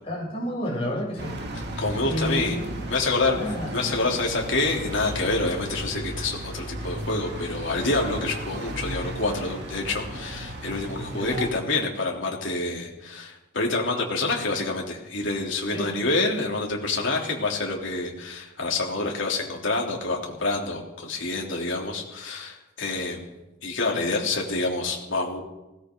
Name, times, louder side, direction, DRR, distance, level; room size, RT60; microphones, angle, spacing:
voice 1, 0.1-1.4 2.1-2.7 3.3-4.0 11.1-11.6 15.7-15.9, equal, 30° left, -5 dB, 7.7 m, -30 dB
sound 1, 1.2-11.5, right 1 dB, 50° right, 2.4 m, -35 dB
voice 2, 1.8-2.6 2.9-23.2 23.6-25.4, left 2 dB, 65° left, -1 dB, 3.4 m, -27 dB
20.0 x 18.0 x 3.9 m, 0.99 s
head